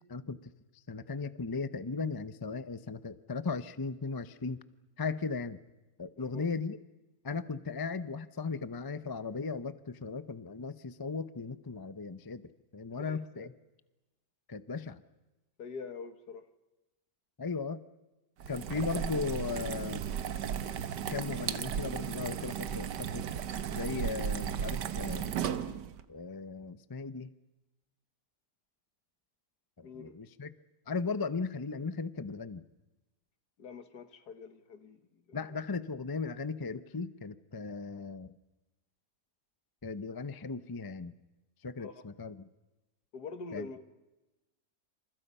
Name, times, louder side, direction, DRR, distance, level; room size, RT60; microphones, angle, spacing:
voice 1, 0.1-0.5 0.9-4.6 5.0-5.6 6.0-6.8 7.2-12.4 12.7-13.5 14.5-15.0 17.4-17.8 18.5-20.0 21.1-23.2 23.7-25.3 26.1-27.3 29.8-30.5 30.9-32.6 35.3-38.3 39.8-41.1 41.6-42.5 43.5-43.7, left 4 dB, 25° left, 13 dB, 0.5 m, -37 dB
voice 2, 12.9-13.5 15.6-16.5 29.8-30.1 33.6-35.4 41.8-42.0 43.1-43.8, left 5 dB, 70° left, 10 dB, 2.1 m, -45 dB
sound 1, 18.4-26.0, right 8 dB, 85° right, 1.7 m, -35 dB
28.5 x 28.0 x 5.6 m, 1.1 s
omnidirectional pair, 1.8 m